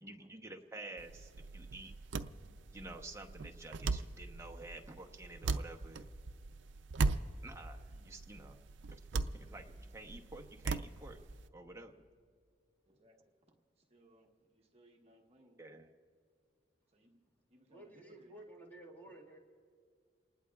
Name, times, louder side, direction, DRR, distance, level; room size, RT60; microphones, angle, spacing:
voice 1, 0.0-1.9 2.7-6.1 7.4-8.6 9.1-11.2 11.5-12.0 15.6-15.9, right 2 dB, 15° right, 2 dB, 0.9 m, -50 dB
sound 1, 1.0-11.5, right 3 dB, 80° right, 0.5 m, -39 dB
voice 2, 7.9-8.4 12.9-13.2 13.8-15.6 16.9-17.2 17.5-18.4, right 1 dB, 35° right, 0 dB, 1.3 m, -66 dB
voice 3, 17.7-19.4, right 1 dB, 10° left, -1 dB, 1.8 m, -53 dB
28.5 x 19.5 x 2.4 m, 2.1 s
head